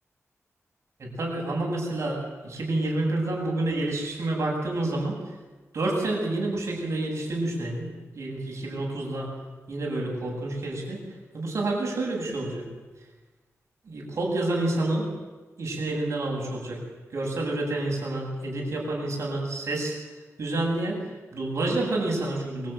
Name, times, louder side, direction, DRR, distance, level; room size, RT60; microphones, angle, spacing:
voice 1, 1.0-5.2 5.7-7.9 8.1-9.3 9.7-11.0 11.3-12.7 13.8-15.1 15.6-16.8 17.1-19.9 20.4-21.0 21.3-22.7, right 2 dB, 60° right, -2 dB, 7.8 m, -28 dB
23.5 x 14.5 x 9.2 m, 1.3 s
wide cardioid pair, 135°, 5 cm